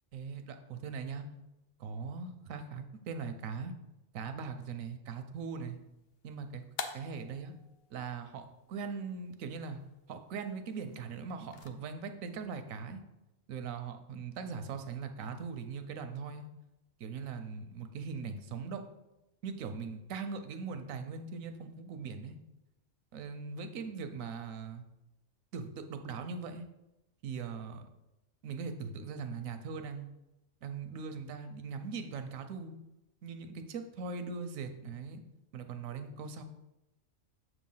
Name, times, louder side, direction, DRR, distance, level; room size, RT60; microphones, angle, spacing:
voice 1, 0.1-1.3 1.8-3.7 4.1-5.8 6.2-6.6 6.9-7.5 7.9-9.8 10.1-13.0 13.5-16.5 17.0-18.8 19.4-22.4 23.1-24.8 25.5-26.6 27.2-27.9 28.4-30.1 30.6-32.8 33.2-35.2 35.5-36.4, right 5 dB, 85° right, 8 dB, 1.1 m, -40 dB
sound 1, 5.3-11.7, left 6 dB, 60° left, 0.7 m, -49 dB
6.8 x 3.1 x 5.5 m, 0.94 s
omnidirectional pair, 1.4 m